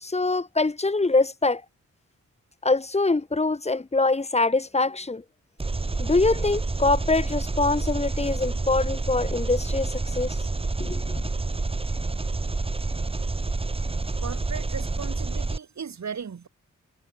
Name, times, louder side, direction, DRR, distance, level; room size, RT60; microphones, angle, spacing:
voice 1, 0.0-1.6 2.6-5.2 6.0-10.4 10.8-11.1, left 3 dB, 20° left, 1.3 m, -24 dB
Engine, 5.6-15.6, right 3 dB, 20° right, 0.9 m, -28 dB
voice 2, 14.2-16.5, right 6 dB, 65° right, 2.9 m, -36 dB
wide cardioid pair, 170°, 30 cm